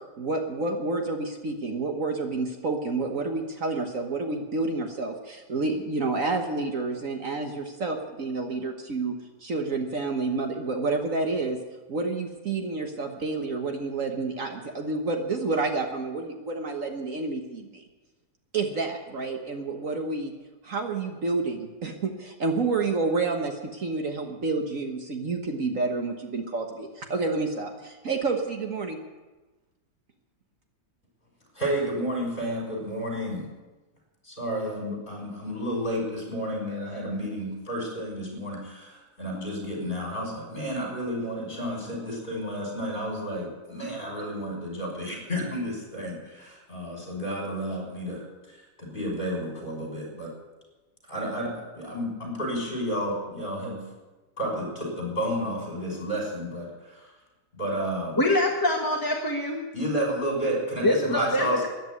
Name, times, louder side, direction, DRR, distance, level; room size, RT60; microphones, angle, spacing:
voice 1, 0.2-9.1 9.4-11.6 11.9-17.8 18.5-20.3 20.6-29.0, right 3 dB, 55° right, 4 dB, 1.6 m, -29 dB
voice 2, 31.5-33.5 34.2-50.3 51.1-53.8 54.4-57.1 57.5-58.2 59.7-61.7, equal, 30° left, -1 dB, 6.0 m, -31 dB
voice 3, 58.2-59.6 60.8-61.7, left 1 dB, 15° left, -1 dB, 1.2 m, -24 dB
13.5 x 10.5 x 9.6 m, 1.2 s
omnidirectional pair, 1.7 m